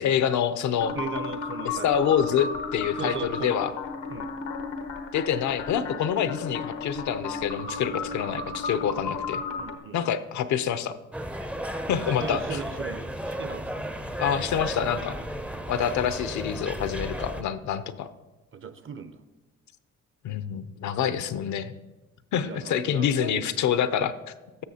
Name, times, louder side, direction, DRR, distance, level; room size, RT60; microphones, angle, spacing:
voice 1, 0.0-1.0 1.6-3.7 5.1-9.4 9.9-11.0 11.9-12.6 14.2-15.2 15.7-18.1 20.2-21.7 22.3-24.1, left 9 dB, 70° left, 13 dB, 0.6 m, -26 dB
sound 1, 0.8-9.8, left 4 dB, 90° left, 0.9 m, -34 dB
voice 2, 1.0-2.0 3.0-3.5 4.1-4.3 9.6-10.0 12.0-13.9 18.5-19.2 21.3-21.4 22.4-23.5, right 6 dB, 45° right, 12 dB, 0.6 m, -37 dB
sound 2, 11.1-17.4, equal, 5° right, 0.5 m, -34 dB
13.5 x 6.5 x 2.8 m, 1.1 s
cardioid pair, 90°, 30 cm